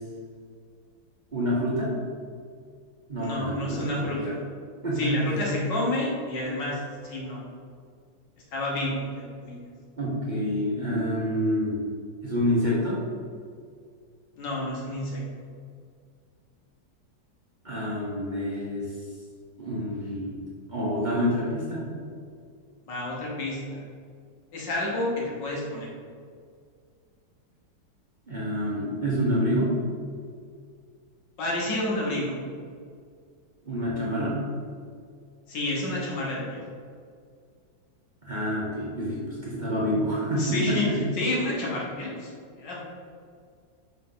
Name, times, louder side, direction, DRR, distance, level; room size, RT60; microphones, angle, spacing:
voice 1, 1.3-1.9 3.1-4.2 4.8-5.5 10.0-11.8 12.2-13.0 17.6-18.9 19.6-20.4 20.7-21.8 28.3-29.7 33.6-34.4 38.2-41.0, equal, 30° right, -7 dB, 1.1 m, -27 dB
voice 2, 3.2-4.4 5.0-7.4 8.5-9.6 14.4-15.2 22.8-23.8 24.5-25.9 31.4-32.4 35.5-36.6 40.4-42.3 42.6-42.8, left 1 dB, 75° left, -4 dB, 2.1 m, -30 dB
5.6 x 3.5 x 5.5 m, 2.2 s
omnidirectional pair, 1.9 m